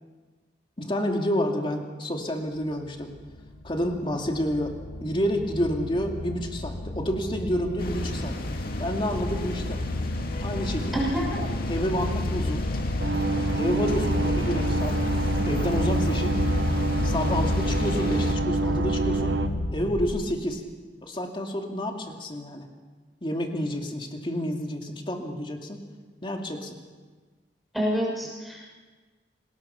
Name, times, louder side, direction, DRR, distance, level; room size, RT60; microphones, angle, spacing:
voice 1, 0.8-3.1 3.6-4.7 5.0-8.4 8.8-9.8 10.4-10.9 11.4-12.7 13.3-15.0 15.5-16.4 17.0-19.4 19.7-20.6 21.0-22.7 23.2-25.9 26.2-26.8, equal, 30° left, 2 dB, 2.5 m, -29 dB
sound 1, 2.8-20.3, left 2 dB, 80° left, 1.2 m, -30 dB
sound 2, 7.8-18.4, left 1 dB, 55° left, 2.3 m, -35 dB
voice 2, 10.9-11.4 27.7-28.7, equal, ahead, -4 dB, 6.4 m, -27 dB
sound 3, 13.0-19.5, right 3 dB, 70° right, 1.3 m, -28 dB
27.0 x 20.0 x 5.8 m, 1.4 s
head